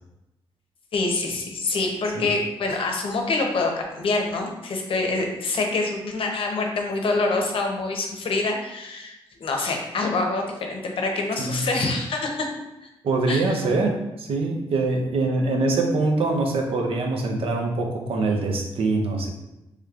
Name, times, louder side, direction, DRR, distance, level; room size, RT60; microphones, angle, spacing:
voice 1, 0.9-12.5 13.3-13.6, left 3 dB, 60° left, 2 dB, 0.7 m, -26 dB
voice 2, 11.4-11.8 13.0-19.3, right 3 dB, 70° right, 2 dB, 0.6 m, -24 dB
3.2 x 3.2 x 2.4 m, 0.92 s
cardioid pair, 65°, 10 cm